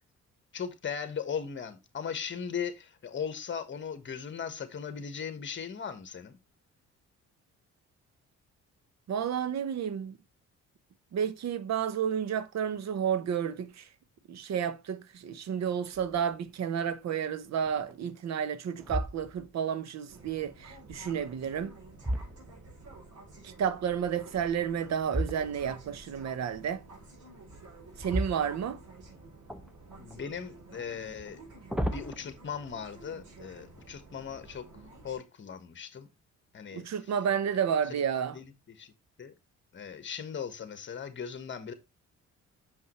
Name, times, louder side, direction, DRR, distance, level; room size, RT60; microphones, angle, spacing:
voice 1, 0.5-6.4 30.0-31.4 31.9-34.6 35.0-36.1 36.5-36.9 38.3-38.9 39.2-39.3 39.7-41.7, left 7 dB, 40° left, 1.3 m, -38 dB
voice 2, 9.1-10.2 11.1-13.9 14.3-21.8 23.4-26.8 28.0-28.8 36.7-38.4, right 8 dB, 60° right, 0.9 m, -31 dB
sound 1, 15.9-16.4 16.9-17.0 17.6-18.2 18.8-19.7 21.3-23.0 25.0-25.9 27.9-29.1 29.5-30.2 31.3-32.2, equal, 5° right, 0.9 m, -36 dB
sound 2, 20.1-35.2, right 2 dB, 75° right, 4.5 m, -51 dB
6.3 x 5.6 x 3.0 m
cardioid pair, 90°, 30 cm